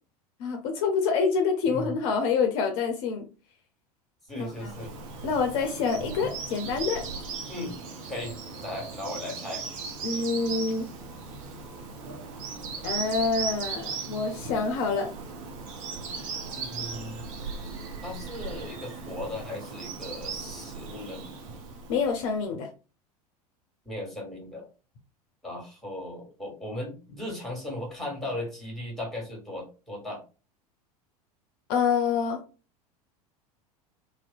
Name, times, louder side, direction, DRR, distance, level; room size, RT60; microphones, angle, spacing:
voice 1, 0.4-3.3 4.4-4.7 5.2-7.0 10.0-10.9 12.8-15.1 21.9-22.7 31.7-32.4, left 5 dB, 50° left, 4 dB, 0.5 m, -27 dB
voice 2, 1.6-2.0 4.3-4.9 7.5-7.7 8.1-8.3 8.6-9.6 16.5-17.2 18.0-21.3 23.8-24.7 25.4-30.2, left 1 dB, ahead, -1 dB, 1.3 m, -37 dB
Bird vocalization bird call bird song, 4.4-22.4, right 4 dB, 60° right, 0.6 m, -38 dB
2.6 x 2.1 x 2.5 m, 0.33 s
figure-of-eight pair, 80°, 20 cm